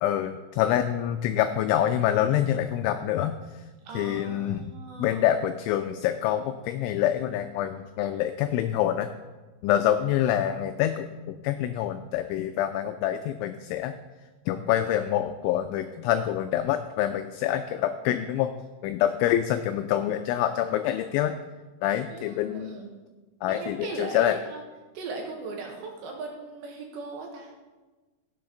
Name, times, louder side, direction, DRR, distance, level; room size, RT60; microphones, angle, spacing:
voice 1, 0.0-3.4 3.9-4.6 5.0-9.1 9.6-13.9 14.5-18.5 18.8-21.3 21.8-22.8 23.4-24.4, left 11 dB, 90° left, 8 dB, 2.7 m, -26 dB
voice 2, 3.8-5.2 22.0-22.9 23.4-24.6 24.9-27.5, right 3 dB, 70° right, 1 dB, 3.1 m, -38 dB
16.5 x 7.8 x 3.8 m, 1.2 s
omnidirectional pair, 5.9 m